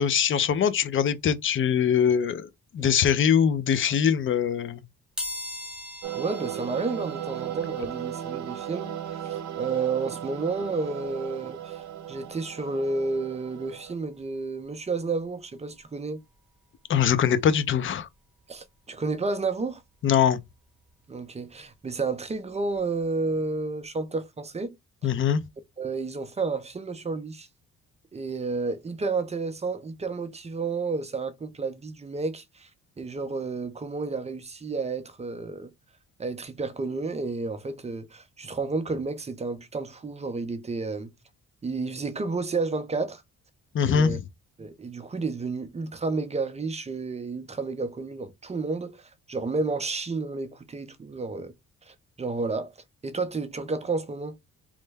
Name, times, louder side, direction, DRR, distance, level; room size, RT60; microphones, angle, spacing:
voice 1, 0.0-4.8 16.9-18.1 20.0-20.4 25.0-25.4 43.7-44.2, left 8 dB, 45° left, 0.5 m, -23 dB
sound 1, 5.2-15.8 16.3-16.4 17.5-17.7 17.9-20.0 20.4-23.0 23.4-23.5 23.9-24.0, left 1 dB, 5° right, 1.0 m, -44 dB
sound 2, 6.0-13.9, right 11 dB, 65° right, 0.7 m, -36 dB
voice 2, 6.1-11.8 12.1-16.2 18.5-19.8 21.1-24.8 25.8-27.5 28.1-32.7 33.0-35.7 36.2-41.1 41.6-43.2 43.8-44.2 44.6-49.0 49.3-51.5 51.9-52.7 53.0-54.4, right 3 dB, 20° right, 0.6 m, -31 dB
3.1 x 2.1 x 3.3 m
cardioid pair, 90°, 30 cm